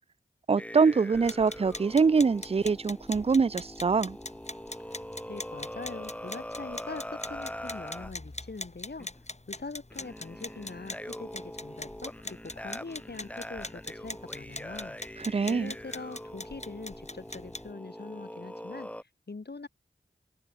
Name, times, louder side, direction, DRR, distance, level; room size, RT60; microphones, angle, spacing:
voice 1, 0.5-4.2 15.2-15.7, right 5 dB, 35° right, 0.4 m, -24 dB
sound 1, 0.6-8.1 9.0-9.2 9.9-19.0, left 1 dB, 5° left, 1.3 m, -43 dB
sound 2, 1.1-17.7, left 2 dB, 35° left, 5.2 m, -43 dB
voice 2, 5.3-9.1 9.5-19.7, left 3 dB, 60° left, 2.7 m, -43 dB
open air
wide cardioid pair, 40°, 19 cm